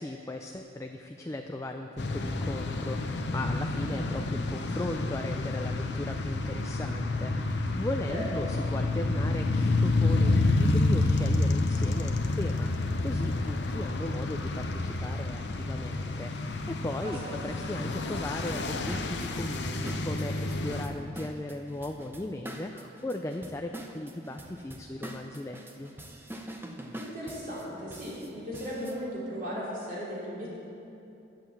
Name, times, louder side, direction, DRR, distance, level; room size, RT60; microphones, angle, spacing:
voice 1, 0.0-25.9, left 1 dB, 15° left, 4 dB, 0.4 m, -37 dB
sound 1, 2.0-20.8, left 2 dB, 70° left, 0.8 m, -29 dB
sound 2, 18.9-29.0, right 1 dB, 10° right, 0.7 m, -44 dB
voice 2, 27.0-30.6, equal, 50° right, -7 dB, 3.1 m, -36 dB
11.0 x 7.7 x 7.1 m, 2.7 s
head